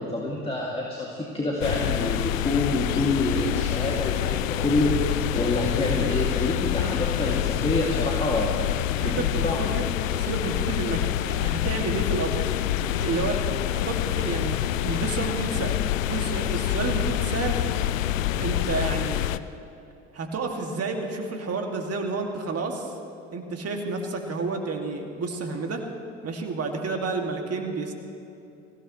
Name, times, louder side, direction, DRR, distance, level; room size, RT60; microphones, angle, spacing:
voice 1, 0.0-8.5 9.0-9.7, left 2 dB, 15° left, -4 dB, 2.5 m, -27 dB
sound 1, 1.6-19.4, left 12 dB, 80° left, 0.6 m, -26 dB
voice 2, 9.0-9.9 10.1-12.5 12.9-13.4 13.7-15.8 16.1-17.6 18.4-19.2 20.1-22.9 23.3-25.8 26.2-27.9, right 3 dB, 40° right, 3 dB, 2.4 m, -30 dB
23.0 x 16.5 x 3.2 m, 2.8 s
hypercardioid pair, 65°, 39 cm